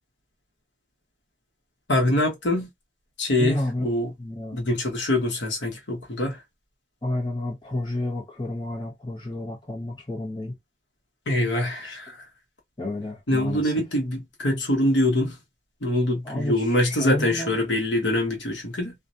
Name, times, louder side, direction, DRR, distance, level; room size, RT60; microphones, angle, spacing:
voice 1, 1.9-2.7 3.2-4.1 4.5-6.4 11.3-12.1 13.3-15.3 15.8-18.9, left 1 dB, 75° left, 1.0 m, -24 dB
voice 2, 3.4-3.8 4.2-4.7 7.0-10.5 11.8-12.0 12.8-13.8 16.2-17.5, left 1 dB, 25° left, 1.1 m, -31 dB
2.4 x 2.0 x 2.6 m
head